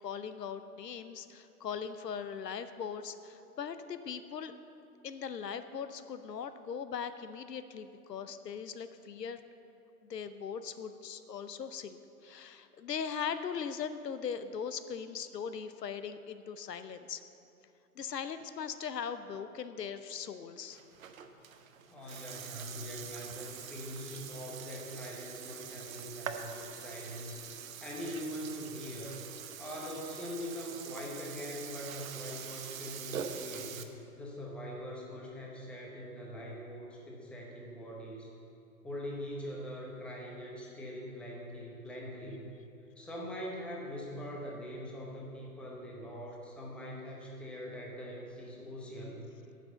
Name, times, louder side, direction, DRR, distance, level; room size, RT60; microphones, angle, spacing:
voice 1, 0.0-4.5 5.0-9.5 10.0-17.2 18.0-20.8, left 7 dB, 85° left, 11 dB, 0.7 m, -40 dB
Burping eructation, 20.7-33.8, right 7 dB, 60° right, 0.8 m, -44 dB
voice 2, 21.9-29.2 29.6-38.3 38.8-42.4 43.0-49.3, equal, ahead, -3 dB, 0.7 m, -43 dB
9.5 x 6.1 x 6.9 m, 2.7 s
figure-of-eight pair, 125°, 47 cm